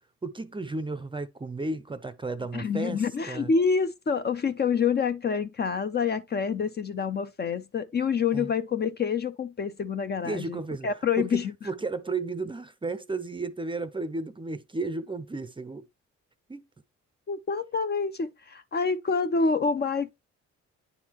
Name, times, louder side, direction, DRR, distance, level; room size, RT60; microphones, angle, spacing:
voice 1, 0.2-3.5 8.3-8.5 10.2-15.9 16.5-16.6, right 3 dB, 15° right, 0.5 m, -34 dB
voice 2, 2.5-10.6 10.8-11.5 17.3-20.1, left 5 dB, 35° left, 0.5 m, -27 dB
9.6 x 3.7 x 3.0 m
cardioid pair, 90°, 30 cm